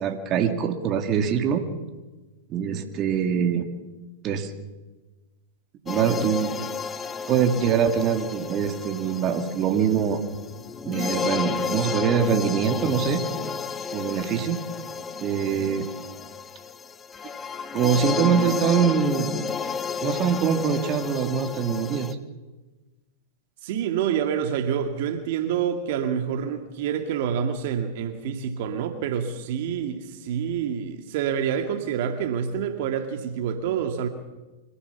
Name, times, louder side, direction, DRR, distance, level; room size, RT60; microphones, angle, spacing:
voice 1, 0.0-1.6 2.5-3.7 4.2-4.5 5.8-6.6 7.3-10.2 10.8-13.2 13.9-14.6 15.2-15.9 17.7-19.3 20.0-22.1, right 7 dB, 35° right, 2.3 m, -23 dB
sound 1, 5.9-22.1, left 5 dB, 20° left, 1.3 m, -32 dB
voice 2, 23.6-34.1, right 8 dB, 60° right, 2.2 m, -27 dB
25.5 x 15.5 x 7.1 m
hypercardioid pair, 105°, 0 cm